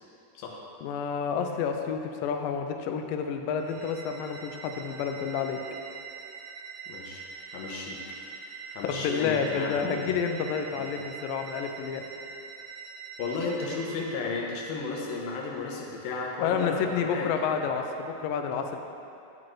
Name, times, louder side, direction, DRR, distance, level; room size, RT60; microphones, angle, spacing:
voice 1, 0.8-5.6 8.8-12.0 16.4-18.8, left 6 dB, 90° left, 4 dB, 2.0 m, -29 dB
sound 1, 3.6-14.1, right 6 dB, 90° right, 2.8 m, -43 dB
voice 2, 6.9-7.2 7.5-8.0 8.7-10.1 10.8-10.9 13.2-17.6, left 4 dB, 75° left, -2 dB, 2.6 m, -34 dB
9.1 x 8.7 x 3.1 m, 2.6 s
omnidirectional pair, 4.6 m